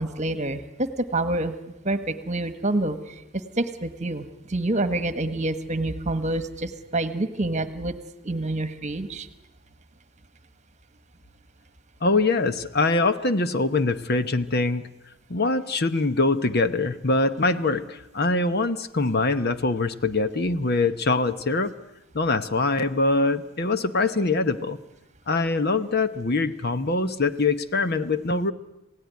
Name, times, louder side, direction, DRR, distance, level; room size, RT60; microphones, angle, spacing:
voice 1, 0.0-1.6 1.8-3.2 3.6-7.9 8.2-9.3, right 2 dB, 35° right, 12 dB, 1.4 m, -27 dB
voice 2, 12.0-14.9 15.3-21.7 22.1-24.8 25.3-28.5, left 3 dB, 50° left, 11 dB, 1.0 m, -23 dB
27.5 x 17.5 x 9.5 m, 0.94 s
head